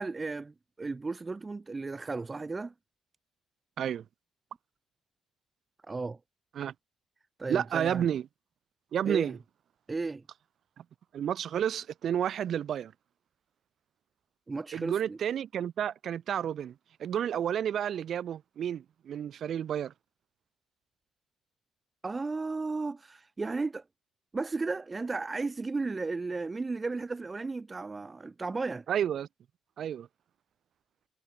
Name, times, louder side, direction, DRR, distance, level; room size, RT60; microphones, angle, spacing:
voice 1, 0.0-2.7 5.9-6.2 7.4-8.0 9.1-9.4 9.9-10.2 14.5-15.2 22.0-23.8 24.3-28.9, right 3 dB, 25° right, 0.5 m, -34 dB
voice 2, 7.5-8.2 8.9-9.4 10.8-10.9 11.1-12.9 14.7-16.7 17.0-19.9 28.9-29.3 29.8-30.1, right 9 dB, 65° right, 1.0 m, -31 dB
cardioid pair, 90°, 0 cm